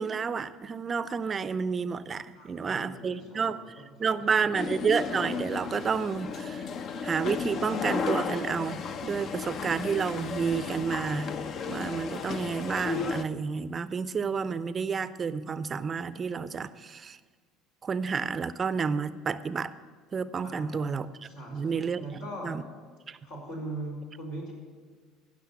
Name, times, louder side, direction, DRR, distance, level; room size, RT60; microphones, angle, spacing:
voice 1, 0.0-3.6 4.0-6.6 7.0-11.4 11.7-17.2 17.8-19.7 20.1-21.1 21.5-22.0 22.4-22.6 23.1-23.2, right 5 dB, 35° right, 15 dB, 0.5 m, -30 dB
voice 2, 2.3-4.7 20.4-20.9 21.3-22.6 23.2-24.5, right 1 dB, 75° left, -4 dB, 4.4 m, -41 dB
sound 1, 4.5-13.2, left 5 dB, 50° left, 0.7 m, -34 dB
16.0 x 6.2 x 7.1 m, 1.5 s
hypercardioid pair, 65°, 0 cm